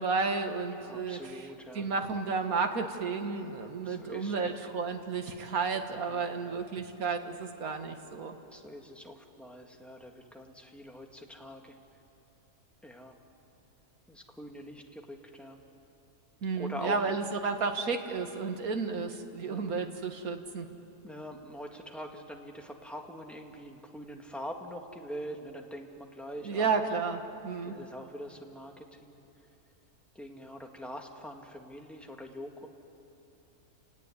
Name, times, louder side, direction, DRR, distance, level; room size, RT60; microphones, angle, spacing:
voice 1, 0.0-8.4 16.4-20.7 26.4-27.7, right 4 dB, 60° right, 6 dB, 1.9 m, -32 dB
voice 2, 0.8-1.9 3.8-4.7 6.1-6.6 8.5-11.8 12.8-13.1 14.1-15.6 16.5-17.2 19.5-19.8 21.0-26.7 27.6-29.2 30.2-32.7, equal, ahead, 2 dB, 1.8 m, -44 dB
30.0 x 18.0 x 9.9 m, 2.9 s
omnidirectional pair, 1.8 m